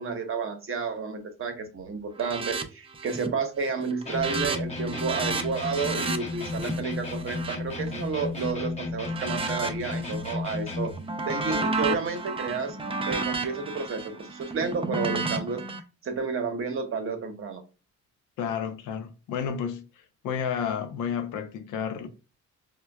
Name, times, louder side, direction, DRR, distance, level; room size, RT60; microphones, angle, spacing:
voice 1, 0.0-10.9 11.2-12.8 13.1-15.6 16.0-17.6, right 5 dB, 45° right, 0.8 m, -31 dB
sound 1, 2.2-2.6 2.9-3.4 3.7-8.5 9.0-10.3 10.7-15.8, right 3 dB, 20° right, 0.4 m, -32 dB
sound 2, 4.1-11.0, left 3 dB, 20° left, 0.7 m, -33 dB
voice 2, 18.4-19.8 20.2-22.1, left 7 dB, 85° left, 0.6 m, -31 dB
4.3 x 2.2 x 2.2 m
cardioid pair, 90°, 30 cm